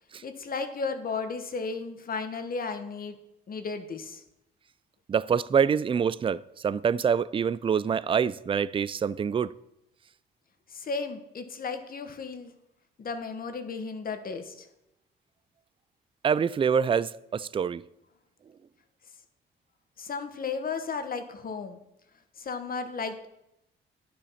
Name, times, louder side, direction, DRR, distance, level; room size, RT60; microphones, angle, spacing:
voice 1, 0.2-3.2 3.5-4.2 10.7-12.5 13.0-14.7 20.0-21.8 22.4-23.3, left 4 dB, 45° left, 1.4 m, -34 dB
voice 2, 5.1-9.5 16.2-17.8, right 7 dB, 25° right, 0.4 m, -26 dB
11.0 x 7.0 x 5.8 m
cardioid pair, 90°, 20 cm